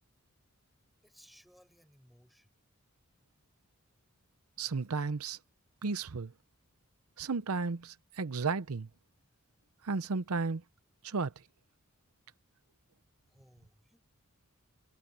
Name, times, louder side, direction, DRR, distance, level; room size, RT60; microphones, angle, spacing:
voice 1, 1.0-2.5 13.3-14.0, equal, ahead, 7.5 m, -62 dB
voice 2, 4.6-5.4 5.8-6.3 7.2-8.9 9.8-10.6 11.0-11.3, right 4 dB, 80° right, 0.7 m, -33 dB
head